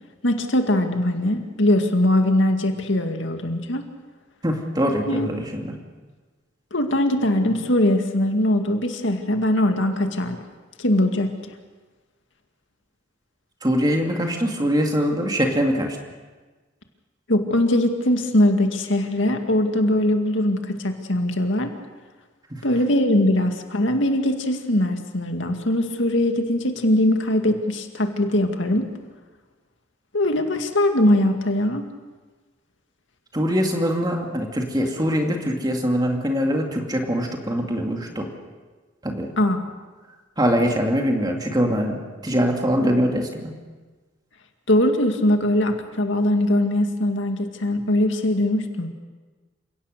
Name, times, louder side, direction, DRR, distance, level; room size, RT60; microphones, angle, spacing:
voice 1, 0.2-3.8 5.1-5.3 6.7-10.4 10.8-11.3 17.3-21.7 22.6-28.9 30.1-31.8 39.4-39.6 44.7-48.9, left 1 dB, 70° left, 5 dB, 2.2 m, -21 dB
voice 2, 4.4-5.7 13.6-16.0 22.5-22.6 33.3-38.3 39.0-39.3 40.4-43.5, equal, 20° right, 2 dB, 2.7 m, -23 dB
29.0 x 17.5 x 6.8 m, 1.3 s
head